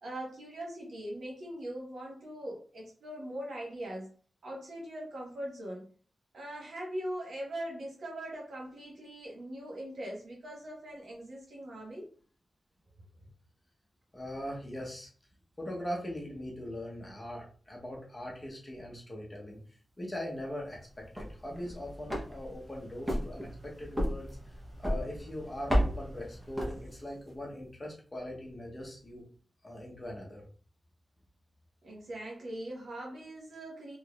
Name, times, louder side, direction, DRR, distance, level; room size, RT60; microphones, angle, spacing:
voice 1, 0.0-4.1 4.4-5.9 6.3-12.1 31.8-34.0, right 1 dB, 65° right, -3 dB, 1.2 m, -41 dB
voice 2, 14.1-15.1 15.6-19.6 20.0-24.3 24.8-29.3 29.6-30.4, left 1 dB, 20° left, -2 dB, 0.9 m, -41 dB
sound 1, 21.0-27.3, equal, 15° right, 0.8 m, -34 dB
3.5 x 3.0 x 2.3 m, 0.42 s
wide cardioid pair, 140°, 0 cm